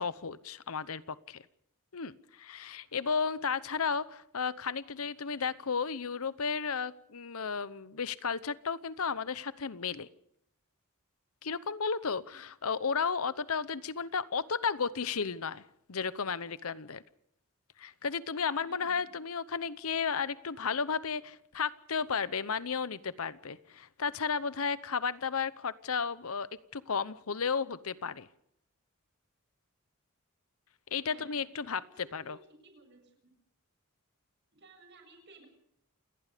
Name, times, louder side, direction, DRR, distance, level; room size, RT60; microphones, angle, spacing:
voice 1, 0.0-1.4 1.9-10.1 11.4-15.6 15.9-17.0 17.8-28.3 30.9-32.4, left 5 dB, 70° left, 16 dB, 0.9 m, -33 dB
voice 2, 18.6-19.2 31.1-32.4 32.6-33.3 34.5-35.5, right 3 dB, 50° right, 6 dB, 7.0 m, -57 dB
28.5 x 18.5 x 5.1 m, 0.74 s
head